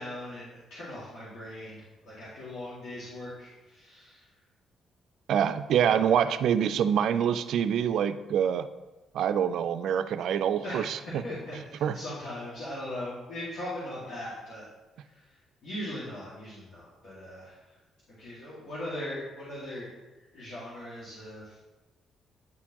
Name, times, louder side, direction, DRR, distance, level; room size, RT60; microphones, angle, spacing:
voice 1, 0.0-4.2 10.6-10.9 11.2-14.7 15.1-17.7 18.1-19.9 20.3-21.6, left 1 dB, 80° left, -10 dB, 1.9 m, -39 dB
voice 2, 5.3-8.7 9.1-11.2 11.8-12.0, right 8 dB, 75° right, 11 dB, 0.3 m, -26 dB
9.5 x 4.3 x 2.9 m, 1.1 s
cardioid pair, 90°, 0 cm